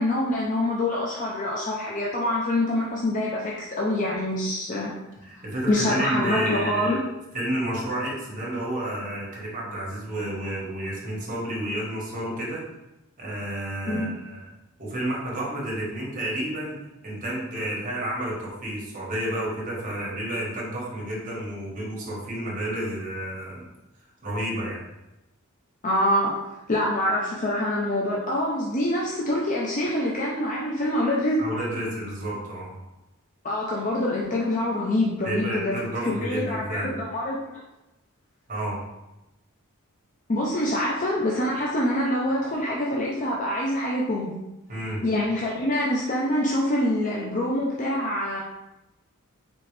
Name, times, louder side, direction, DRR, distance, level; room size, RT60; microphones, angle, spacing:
voice 1, 0.0-4.9 5.7-7.0 13.9-14.1 25.8-26.3 26.7-31.4 33.4-37.6 40.3-44.3 45.0-48.4, left 1 dB, 35° left, -4 dB, 0.6 m, -25 dB
voice 2, 5.2-6.9 7.3-12.6 13.2-14.4 14.8-23.7 24.2-24.8 31.4-32.8 35.2-37.0 38.5-38.8 44.7-45.0, right 1 dB, 40° right, -4 dB, 1.5 m, -31 dB
4.3 x 3.8 x 3.3 m, 0.95 s
head